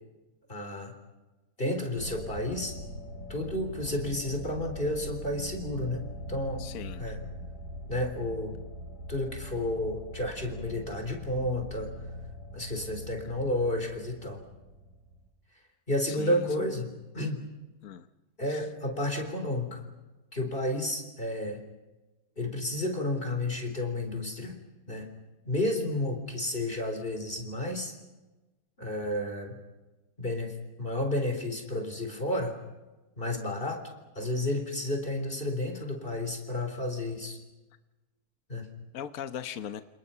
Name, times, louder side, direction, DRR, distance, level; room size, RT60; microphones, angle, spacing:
voice 1, 0.5-0.9 1.6-2.8 3.3-6.0 6.3-6.6 7.0-7.2 7.9-8.6 9.1-11.9 12.5-14.4 15.9-17.5 18.4-19.9 20.3-21.6 22.4-24.6 24.9-25.1 25.4-27.9 28.8-29.6 30.2-32.6 33.2-33.9 34.2-37.4 38.5-38.7, left 1 dB, 35° left, 4 dB, 4.0 m, -31 dB
sound 1, 1.9-15.3, equal, 90° right, 8.0 m, -42 dB
voice 2, 6.6-7.1 16.1-16.5 17.8-18.1 18.5-18.6 38.9-39.8, left 9 dB, 65° left, 9 dB, 1.4 m, -39 dB
29.0 x 29.0 x 5.6 m, 1.1 s
omnidirectional pair, 1.6 m